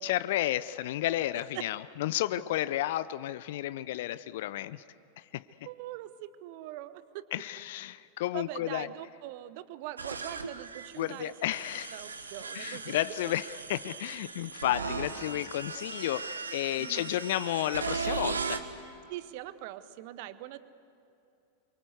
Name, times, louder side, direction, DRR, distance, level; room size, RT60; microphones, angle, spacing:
voice 1, 0.0-4.8 5.2-5.4 7.3-8.9 11.0-12.0 12.5-18.6, left 14 dB, 55° left, 17 dB, 0.5 m, -32 dB
voice 2, 5.6-7.2 8.3-11.3 11.9-13.0 16.8-17.1 19.1-20.6, right 14 dB, 50° right, 14 dB, 1.0 m, -42 dB
sound 1, 10.0-18.6, right 5 dB, 75° right, 1.4 m, -38 dB
27.5 x 24.0 x 8.1 m, 2.7 s
figure-of-eight pair, 90°, 0 cm